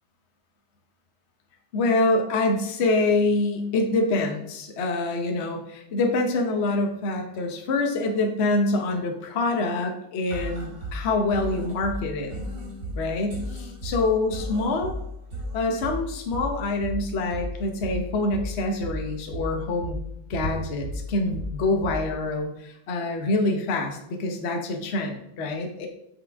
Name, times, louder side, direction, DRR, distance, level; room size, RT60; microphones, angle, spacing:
voice 1, 1.7-12.3 13.0-15.0 15.5-20.0 20.3-25.9, left 2 dB, 45° left, 3 dB, 1.0 m, -26 dB
sound 1, 10.3-22.3, equal, 60° right, 2.4 m, -35 dB
8.1 x 5.2 x 3.5 m, 0.76 s
omnidirectional pair, 2.2 m